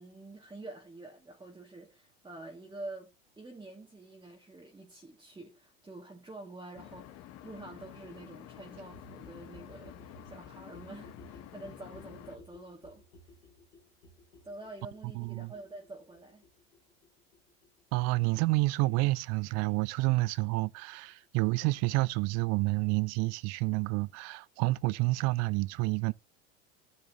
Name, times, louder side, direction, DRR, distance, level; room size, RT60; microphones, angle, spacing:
voice 1, 0.0-13.0 14.4-16.5, right 2 dB, 15° right, 2.3 m, -47 dB
sound 1, 6.7-12.4, left 12 dB, 45° left, 1.4 m, -50 dB
sound 2, 8.8-20.4 20.6-20.7 20.9-21.0 21.2-21.3 21.5-21.6 21.8-21.9 22.1-22.2, left 1 dB, 90° left, 3.2 m, -57 dB
voice 2, 15.1-15.5 17.9-26.1, right 22 dB, 50° right, 0.6 m, -29 dB
12.5 x 6.7 x 3.0 m
hypercardioid pair, 95°, 33 cm